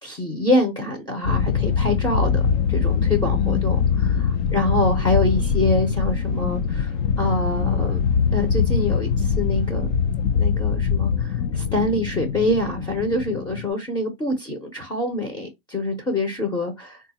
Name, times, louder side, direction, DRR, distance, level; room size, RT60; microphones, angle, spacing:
voice 1, 0.0-2.4 2.7-8.0 8.3-9.9 10.4-17.0, left 1 dB, 15° left, 0.6 m, -25 dB
sound 1, 1.2-13.7, left 6 dB, 50° left, 0.5 m, -22 dB
3.6 x 2.3 x 2.8 m
supercardioid pair, 135°, 31 cm